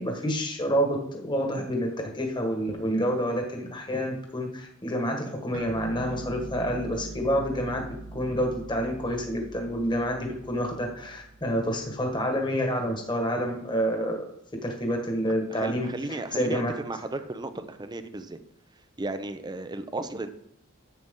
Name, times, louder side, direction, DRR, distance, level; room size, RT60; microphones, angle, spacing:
voice 1, 0.0-1.9 2.1-7.8 8.1-14.3 14.6-15.9 16.3-16.7, equal, 25° left, 2 dB, 1.6 m, -28 dB
sound 1, 5.5-12.4, right 2 dB, 90° right, 1.0 m, -43 dB
voice 2, 15.5-18.4 19.0-20.3, right 2 dB, 20° right, 10 dB, 0.6 m, -34 dB
10.5 x 7.6 x 3.8 m, 0.73 s
head